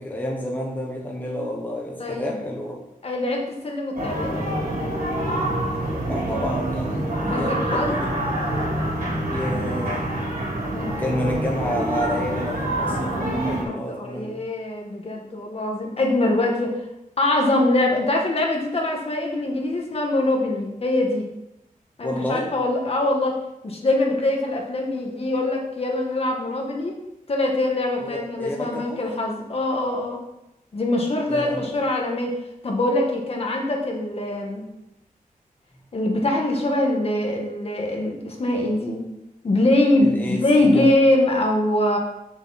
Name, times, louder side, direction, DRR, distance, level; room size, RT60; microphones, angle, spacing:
voice 1, 0.0-2.8 6.1-8.2 9.3-10.1 11.0-14.4 22.0-22.5 28.0-29.0 31.3-31.7 40.0-40.9, equal, 10° left, -2 dB, 1.0 m, -29 dB
voice 2, 2.0-2.4 3.0-4.4 7.2-8.0 10.6-11.4 13.1-16.9 17.2-21.2 22.0-23.3 23.6-27.0 27.3-30.2 30.7-32.3 32.6-34.6 35.9-39.0 39.4-42.0, left 1 dB, 45° left, 0 dB, 1.7 m, -23 dB
sound 1, 3.9-13.6, right 1 dB, 75° right, 3.7 m, -26 dB
8.2 x 7.0 x 4.2 m, 0.88 s
wide cardioid pair, 165°, 14 cm